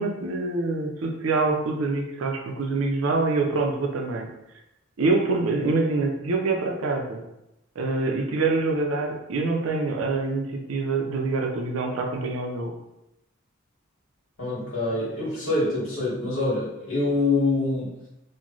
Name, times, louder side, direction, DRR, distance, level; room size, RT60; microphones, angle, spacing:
voice 1, 0.0-4.3 5.0-7.2 7.8-12.7, right 3 dB, 70° right, 2 dB, 0.5 m, -25 dB
voice 2, 14.4-17.9, left 2 dB, 65° left, -8 dB, 1.4 m, -25 dB
3.0 x 2.1 x 3.8 m, 0.89 s
head